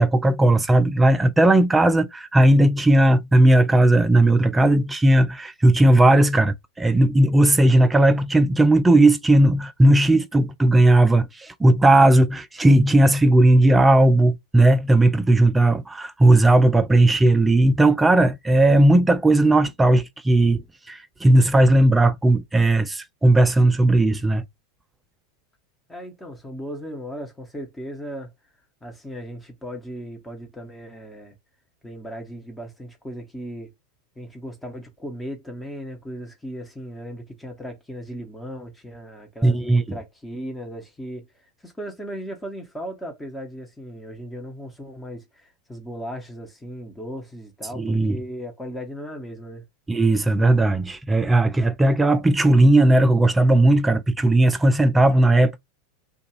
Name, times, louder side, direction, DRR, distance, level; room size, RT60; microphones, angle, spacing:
voice 1, 0.0-20.6 20.9-24.4 39.4-39.8 47.7-48.2 49.9-55.6, right 1 dB, 10° right, 0.4 m, -17 dB
voice 2, 25.9-28.3 28.8-31.4 31.8-33.7 34.2-41.3 41.6-49.6, equal, 10° left, 0.9 m, -36 dB
2.4 x 2.3 x 3.0 m
figure-of-eight pair, 90°, 0 cm